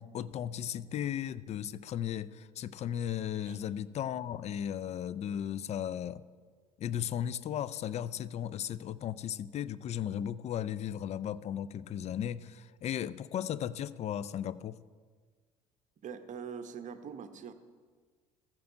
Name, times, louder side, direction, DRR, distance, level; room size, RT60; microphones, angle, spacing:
voice 1, 0.0-6.2 6.8-14.8, left 10 dB, 35° left, 17 dB, 0.4 m, -36 dB
voice 2, 16.0-17.5, right 7 dB, 40° right, 10 dB, 0.9 m, -43 dB
14.5 x 6.0 x 4.4 m, 1.5 s
figure-of-eight pair, 60°, 20 cm